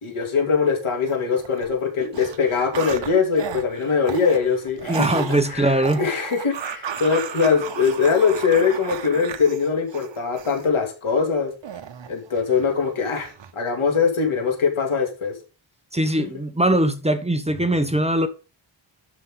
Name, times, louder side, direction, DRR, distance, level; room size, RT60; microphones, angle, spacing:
voice 1, 0.0-11.5 12.1-15.3, left 5 dB, 85° left, 3.0 m, -22 dB
sound 1, 1.1-1.7 2.0-10.7 11.6-12.7 13.1-13.5, right 8 dB, 65° right, 1.1 m, -34 dB
voice 2, 4.9-6.0 15.9-18.3, right 1 dB, 15° right, 1.0 m, -21 dB
12.0 x 5.6 x 3.9 m
wide cardioid pair, 105°, 48 cm